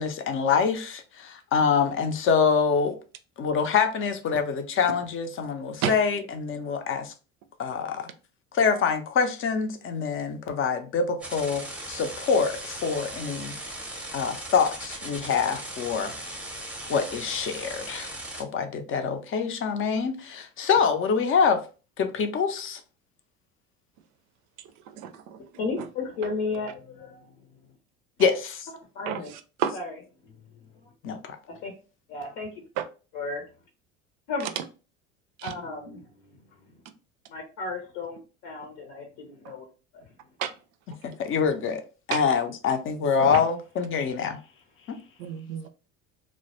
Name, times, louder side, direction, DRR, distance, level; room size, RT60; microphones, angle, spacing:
voice 1, 0.0-3.0 3.4-7.1 7.6-8.1 8.5-13.5 14.1-16.2 16.9-21.6 22.0-22.8 28.2-28.7 31.0-31.4 41.0-41.8 42.1-44.4 44.9-45.0, left 6 dB, 35° left, 0.5 m, -25 dB
sound 1, 11.2-18.4, right 1 dB, 5° right, 0.6 m, -38 dB
voice 2, 25.0-25.4 25.8-25.9 29.1-29.7 32.8-32.9 34.4-34.6 35.4-35.5 40.4-40.5 42.1-42.2 43.3-43.4 45.2-45.7, right 9 dB, 65° right, 0.5 m, -31 dB
voice 3, 25.6-26.7 27.0-27.1 29.0-29.3 29.7-29.9 31.6-31.7 32.1-32.5 33.1-33.4 34.3-34.5 35.4-36.0 37.3-38.2 38.4-39.0 39.4-39.6 43.2-43.3, left 3 dB, 70° left, 0.7 m, -32 dB
2.2 x 2.0 x 2.9 m
hypercardioid pair, 80°, 36 cm